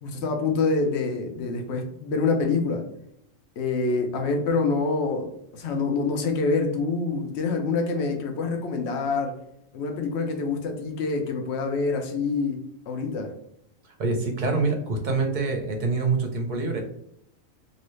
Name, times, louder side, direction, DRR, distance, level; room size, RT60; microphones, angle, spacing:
voice 1, 0.0-2.8 3.6-9.3 9.7-12.6 12.9-13.3, left 4 dB, 60° left, 4 dB, 0.9 m, -26 dB
voice 2, 14.0-16.8, right 3 dB, 45° right, 2 dB, 0.7 m, -25 dB
2.8 x 2.7 x 3.1 m, 0.75 s
omnidirectional pair, 1.4 m